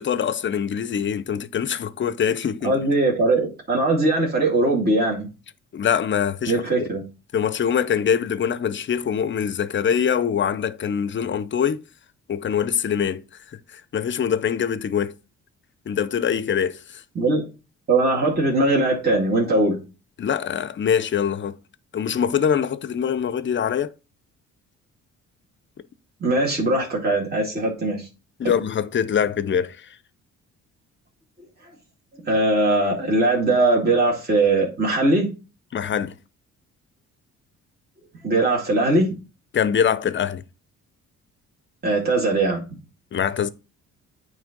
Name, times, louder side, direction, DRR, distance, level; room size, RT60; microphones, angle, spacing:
voice 1, 0.0-2.8 5.7-6.9 7.3-11.8 12.3-13.2 13.7-15.1 15.9-17.0 20.2-21.6 21.9-23.9 28.4-29.9 35.7-36.1 39.5-40.4 43.1-43.5, left 8 dB, 40° left, 0.5 m, -23 dB
voice 2, 2.6-5.3 6.5-7.0 17.2-17.4 17.9-19.8 26.2-28.1 32.2-35.3 38.2-39.1 41.8-42.6, right 2 dB, 30° right, 2.2 m, -20 dB
9.1 x 3.3 x 5.2 m
cardioid pair, 90°, 30 cm